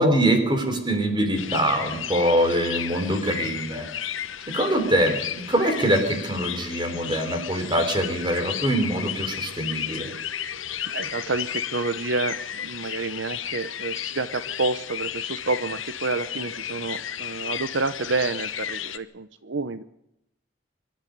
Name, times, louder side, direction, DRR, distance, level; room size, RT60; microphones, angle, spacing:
voice 1, 0.0-3.9 4.5-10.1, right 1 dB, 25° right, 6 dB, 3.9 m, -23 dB
sound 1, 1.4-19.0, left 10 dB, 90° left, 1.2 m, -33 dB
voice 2, 10.9-19.8, right 3 dB, 70° right, 13 dB, 0.8 m, -29 dB
25.5 x 12.0 x 9.4 m, 0.81 s
head